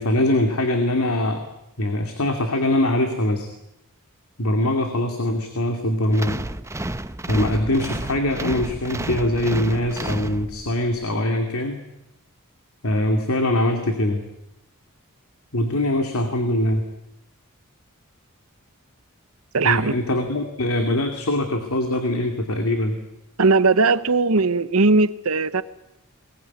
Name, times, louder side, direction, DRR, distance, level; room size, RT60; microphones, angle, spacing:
voice 1, 0.0-1.4 1.8-3.5 4.4-6.4 7.3-11.8 12.8-14.3 15.5-16.8 19.6-23.0, left 1 dB, 70° left, 2.5 m, -22 dB
sound 1, 6.1-10.9, right 1 dB, 15° right, 0.8 m, -31 dB
voice 2, 19.5-19.9 23.4-25.6, right 3 dB, 70° right, 1.0 m, -18 dB
22.5 x 20.0 x 9.5 m
head